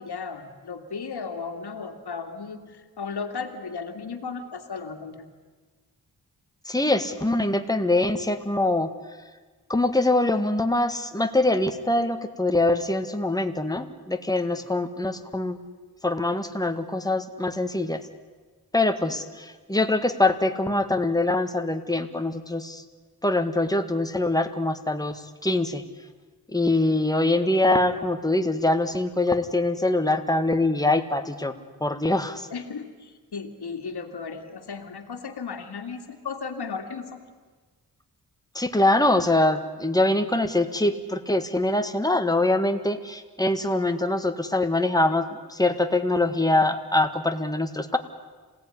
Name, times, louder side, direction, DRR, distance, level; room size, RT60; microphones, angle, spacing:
voice 1, 0.0-5.3 14.5-14.6 19.1-19.2 32.5-37.2, left 5 dB, 80° left, 4 dB, 2.3 m, -35 dB
voice 2, 6.6-8.9 9.7-15.6 16.0-18.0 18.7-22.8 23.2-25.8 26.5-31.5 31.8-32.5 38.5-48.0, left 2 dB, 10° left, 7 dB, 1.7 m, -23 dB
27.0 x 17.5 x 9.9 m, 1.4 s
wide cardioid pair, 90°, 39 cm